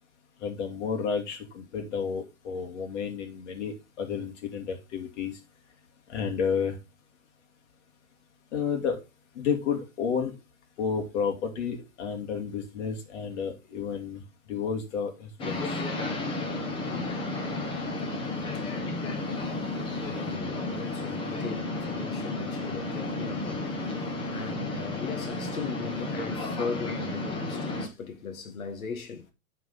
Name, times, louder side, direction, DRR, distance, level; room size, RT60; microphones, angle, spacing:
voice 1, 0.4-5.3 6.1-6.8 8.5-9.0 9.3-10.3 10.8-14.2 14.5-15.8, left 6 dB, 60° left, 2.6 m, -31 dB
sound 1, 15.4-27.9, left 2 dB, 10° left, 1.2 m, -32 dB
voice 2, 20.1-23.8 24.3-29.3, left 5 dB, 80° left, 1.9 m, -38 dB
9.9 x 4.7 x 4.1 m
hypercardioid pair, 150°, 41 cm